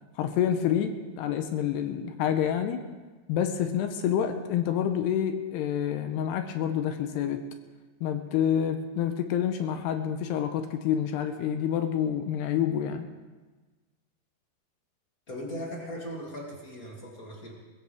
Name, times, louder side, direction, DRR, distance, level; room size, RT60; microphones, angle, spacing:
voice 1, 0.2-2.8 3.3-7.4 8.0-13.1, left 9 dB, 80° left, 7 dB, 2.7 m, -28 dB
voice 2, 15.3-17.5, equal, 25° left, -2 dB, 2.2 m, -38 dB
22.0 x 16.5 x 3.6 m, 1.3 s
omnidirectional pair, 5.1 m